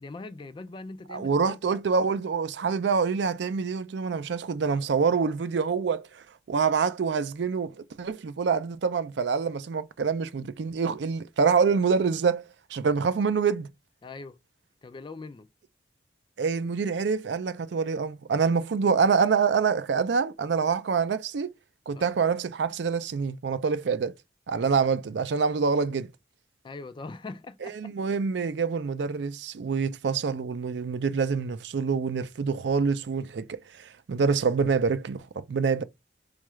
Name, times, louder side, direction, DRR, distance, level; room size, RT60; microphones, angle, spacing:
voice 1, 0.0-1.8 14.0-14.4 14.8-15.5 21.9-22.1 26.6-27.9, left 3 dB, 25° left, 0.3 m, -41 dB
voice 2, 1.1-12.4 12.7-13.7 16.4-21.5 21.9-24.1 24.5-26.1 27.6-35.8, right 5 dB, 70° right, 0.4 m, -26 dB
4.5 x 2.4 x 3.1 m
head